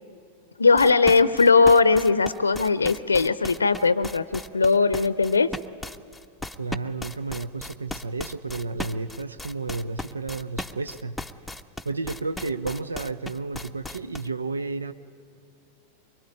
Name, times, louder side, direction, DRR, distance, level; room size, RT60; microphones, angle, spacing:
voice 1, 0.6-5.5, left 4 dB, 75° left, 17 dB, 0.6 m, -19 dB
sound 1, 0.8-14.3, left 1 dB, ahead, 0.8 m, -36 dB
voice 2, 6.6-11.2 11.8-14.9, right 3 dB, 75° right, 12 dB, 0.7 m, -32 dB
23.5 x 22.5 x 9.9 m, 2.5 s
figure-of-eight pair, 90°, 0 cm